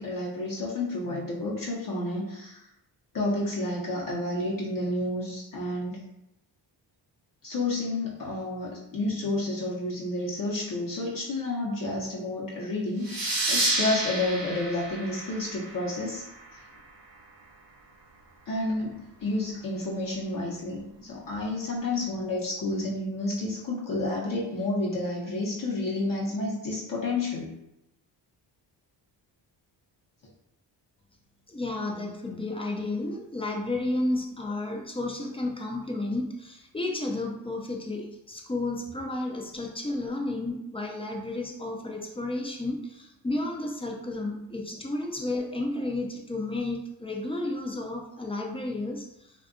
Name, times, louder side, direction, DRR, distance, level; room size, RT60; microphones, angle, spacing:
voice 1, 0.0-2.6 3.1-6.0 7.4-13.1 13.5-16.2 16.5-16.6 18.5-27.5, left 2 dB, 45° left, -5 dB, 0.7 m, -30 dB
sound 1, 13.0-16.3, right 2 dB, 50° right, 0.9 m, -30 dB
voice 2, 31.5-49.3, left 2 dB, 15° left, 1 dB, 0.4 m, -32 dB
2.5 x 2.2 x 2.5 m, 0.84 s
cardioid pair, 65°, 45 cm